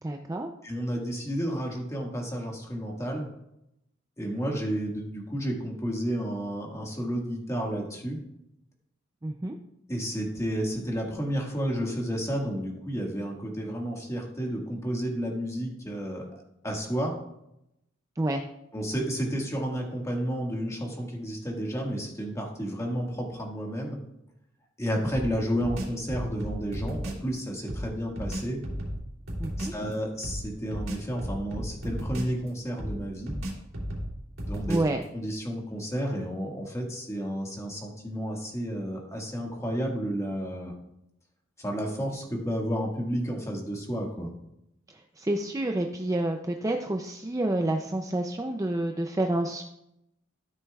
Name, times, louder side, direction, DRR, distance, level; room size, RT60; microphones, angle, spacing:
voice 1, 0.0-0.5 9.2-9.6 18.2-18.4 29.4-29.7 34.7-35.0 45.2-49.6, right 1 dB, 15° right, 4 dB, 0.4 m, -28 dB
voice 2, 0.6-3.3 4.2-8.2 9.9-17.2 18.7-24.0 24.8-28.6 29.6-33.4 34.4-34.8 35.1-40.7 41.6-44.3, equal, 15° left, -1 dB, 1.7 m, -31 dB
sound 1, 25.1-27.3 27.7-29.8 30.2-32.5 32.8-35.0, equal, 85° right, 3.0 m, -35 dB
13.0 x 7.2 x 2.3 m, 0.82 s
head